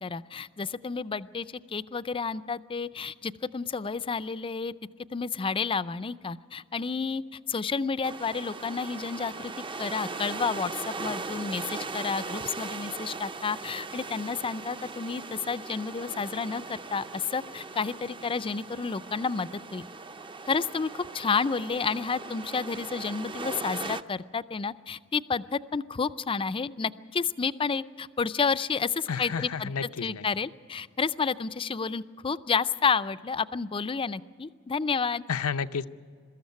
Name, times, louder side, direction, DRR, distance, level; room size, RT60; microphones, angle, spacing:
voice 1, 0.0-4.7 5.1-7.2 7.5-9.5 9.8-19.9 20.5-29.7 30.0-35.2, left 5 dB, 25° left, 15 dB, 0.4 m, -30 dB
sound 1, 8.0-24.0, right 3 dB, 25° right, 0.5 m, -39 dB
voice 2, 29.1-30.2 35.3-35.9, left 6 dB, 85° left, 11 dB, 0.6 m, -31 dB
22.5 x 13.5 x 9.4 m, 2.1 s
head